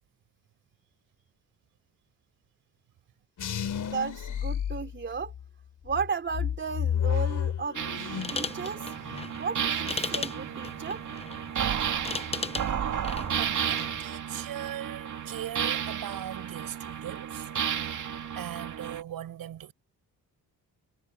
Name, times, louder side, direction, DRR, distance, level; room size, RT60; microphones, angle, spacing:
sound 1, 3.4-5.4 5.9-8.5 8.8-9.3, left 8 dB, 60° left, 4.0 m, -31 dB
voice 1, 3.8-5.3 5.8-7.8 8.3-8.9 9.4-11.0, right 5 dB, 35° right, 3.5 m, -34 dB
sound 2, 7.7-19.0, right 8 dB, 60° right, 2.4 m, -33 dB
sound 3, 8.1-14.0, left 4 dB, 20° left, 0.9 m, -38 dB
voice 2, 13.4-17.5 17.8-18.0 18.3-19.7, right 11 dB, 80° right, 7.3 m, -39 dB
cardioid pair, 125°, 34 cm